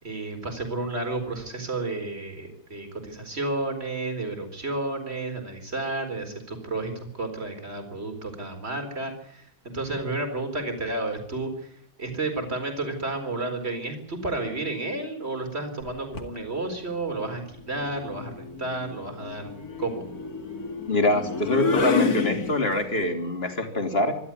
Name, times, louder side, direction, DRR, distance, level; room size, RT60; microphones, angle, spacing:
voice 1, 0.0-11.7 12.0-19.5 19.8-20.1, right 2 dB, 30° right, 6 dB, 4.5 m, -31 dB
sound 1, 15.8-16.4 17.7-23.0, left 4 dB, 50° left, 2.7 m, -30 dB
voice 2, 20.9-24.2, left 2 dB, 30° left, 5 dB, 3.2 m, -24 dB
25.0 x 12.0 x 9.7 m, 0.67 s
omnidirectional pair, 2.1 m